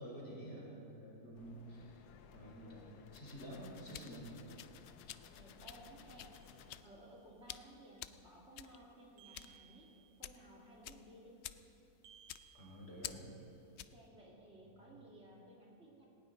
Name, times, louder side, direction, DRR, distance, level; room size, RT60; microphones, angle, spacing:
voice 1, 0.0-2.0 2.3-2.9 3.1-4.3 12.5-13.2 14.6-14.8, right 1 dB, 40° left, -4 dB, 4.4 m, -50 dB
sound 1, 1.3-6.8, left 8 dB, 90° left, 1.3 m, -59 dB
voice 2, 2.6-3.1 4.8-9.9 10.2-11.3 13.7-16.1, right 1 dB, 45° right, -4 dB, 2.8 m, -58 dB
sound 2, 3.7-14.1, left 11 dB, 70° left, 0.6 m, -52 dB
sound 3, 6.3-7.3 9.2-10.4 12.0-13.5, right 9 dB, 70° right, 1.8 m, -64 dB
18.5 x 18.5 x 3.9 m, 2.9 s
omnidirectional pair, 1.7 m